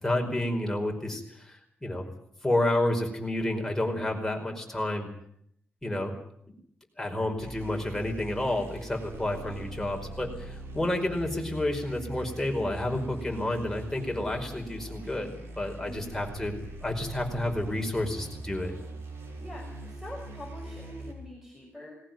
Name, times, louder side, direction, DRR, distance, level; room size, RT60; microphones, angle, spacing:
voice 1, 0.0-2.1 2.4-5.1 5.8-6.1 7.0-16.5 16.8-18.7, left 1 dB, 10° left, 2 dB, 5.0 m, -30 dB
sound 1, 7.4-21.1, right 2 dB, 85° right, 5.7 m, -42 dB
voice 2, 19.4-22.0, left 1 dB, 10° right, 0 dB, 5.9 m, -44 dB
19.5 x 18.5 x 9.3 m, 0.68 s
wide cardioid pair, 110°, 4 cm